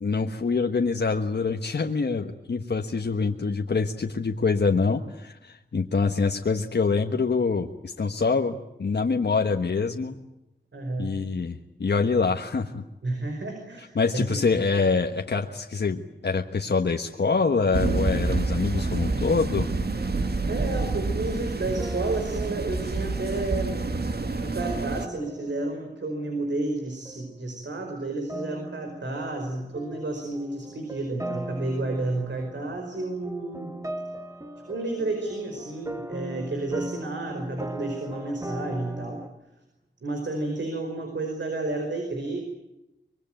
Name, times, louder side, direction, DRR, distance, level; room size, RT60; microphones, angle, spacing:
voice 1, 0.0-10.2 11.0-12.8 13.9-19.7, left 4 dB, 65° left, 4 dB, 1.4 m, -25 dB
voice 2, 10.7-11.1 13.0-14.4 20.5-23.8 24.4-33.7 34.7-39.2 40.0-42.4, right 2 dB, 80° right, 4 dB, 5.1 m, -31 dB
sound 1, 17.7-25.1, right 3 dB, 60° right, 1.8 m, -28 dB
sound 2, 19.9-26.8 27.1-27.4 28.3-39.3, right 1 dB, 15° right, 1.6 m, -40 dB
24.5 x 22.5 x 9.1 m, 0.91 s
wide cardioid pair, 80°, 18 cm